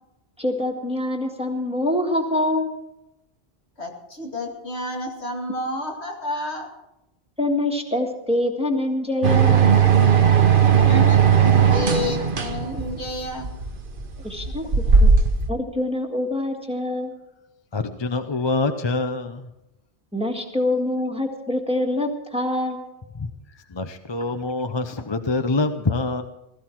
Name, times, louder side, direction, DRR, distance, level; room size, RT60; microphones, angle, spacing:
voice 1, 0.4-2.8 7.4-9.6 14.2-14.7 14.9-15.2 15.5-17.1 20.1-22.8, left 1 dB, 5° right, 3 dB, 1.7 m, -25 dB
voice 2, 3.8-6.7 10.8-13.5 14.9-15.0, left 1 dB, 75° left, 1 dB, 2.6 m, -30 dB
sound 1, 9.2-15.5, right 6 dB, 50° right, 1.3 m, -17 dB
voice 3, 17.7-19.5 23.7-26.2, left 3 dB, 30° left, 8 dB, 0.7 m, -25 dB
17.0 x 14.5 x 4.6 m, 0.92 s
omnidirectional pair, 1.1 m